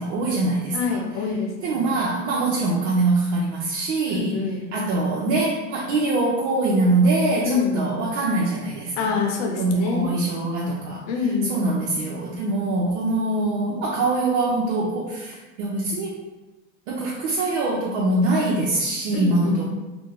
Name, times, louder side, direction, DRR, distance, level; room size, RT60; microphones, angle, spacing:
voice 1, 0.0-1.0 1.6-4.3 4.7-9.2 9.6-11.1 11.5-16.1 16.9-19.7, right 2 dB, 85° right, -4 dB, 0.7 m, -23 dB
voice 2, 0.7-1.9 4.1-4.7 7.4-8.0 9.0-10.1 11.1-11.6 19.1-19.7, left 5 dB, 80° left, 1 dB, 0.8 m, -26 dB
2.9 x 2.1 x 3.8 m, 1.1 s
supercardioid pair, 125°, 36 cm